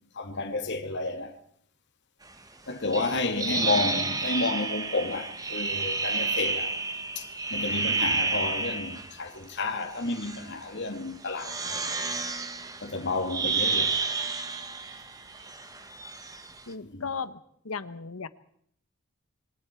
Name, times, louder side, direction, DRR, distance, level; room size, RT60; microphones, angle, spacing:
voice 1, 0.2-1.3 2.7-6.7 7.2-11.8 12.8-14.0 16.8-17.1, left 3 dB, 55° left, 2.4 m, -31 dB
sound 1, 2.9-9.1 9.9-10.5 11.3-16.6, right 4 dB, 15° right, 1.5 m, -30 dB
voice 2, 16.7-17.4 17.6-18.3, left 5 dB, 85° left, 1.2 m, -36 dB
26.5 x 23.5 x 4.6 m
head